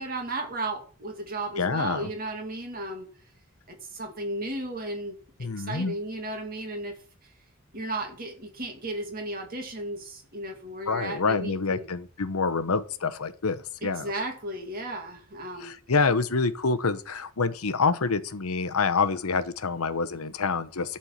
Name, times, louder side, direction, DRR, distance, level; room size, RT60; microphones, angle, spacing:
voice 1, 0.0-3.1 3.7-6.9 7.7-11.9 13.8-15.7, right 2 dB, 45° right, 2.2 m, -34 dB
voice 2, 1.6-2.1 5.4-5.9 10.9-14.1 15.6-21.0, left 4 dB, 85° left, 0.9 m, -27 dB
11.5 x 4.4 x 7.2 m
head